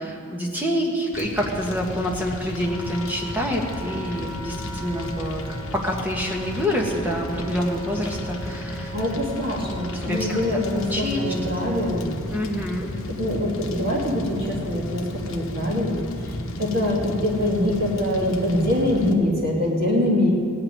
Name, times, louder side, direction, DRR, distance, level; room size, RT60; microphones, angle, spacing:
voice 1, 0.0-5.4 5.7-9.2 10.0-10.4 10.9-11.2 11.6-11.8 12.3-12.9, equal, 10° right, -1 dB, 1.4 m, -27 dB
Fire, 1.1-19.1, left 1 dB, 60° left, 1.1 m, -34 dB
Wind instrument woodwind instrument, 2.6-11.9, right 3 dB, 15° left, 2.0 m, -40 dB
voice 2, 8.9-12.2 13.2-20.3, left 1 dB, 40° right, -3 dB, 2.4 m, -24 dB
17.0 x 5.9 x 9.3 m, 2.3 s
head